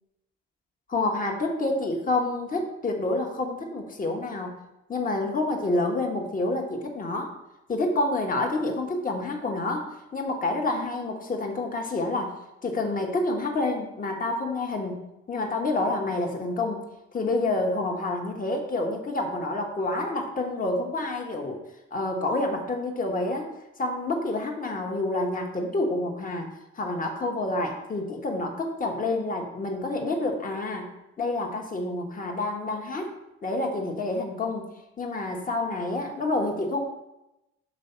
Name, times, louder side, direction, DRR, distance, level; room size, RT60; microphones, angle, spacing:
voice 1, 0.9-4.6 4.9-7.3 7.7-9.9 10.1-12.3 12.6-16.8 17.1-21.6 21.9-23.5 23.8-30.9 31.2-33.1 33.4-34.7 35.0-36.8, left 2 dB, 30° left, 1 dB, 1.2 m, -28 dB
5.4 x 3.4 x 5.5 m, 0.93 s
supercardioid pair, 65°, 29 cm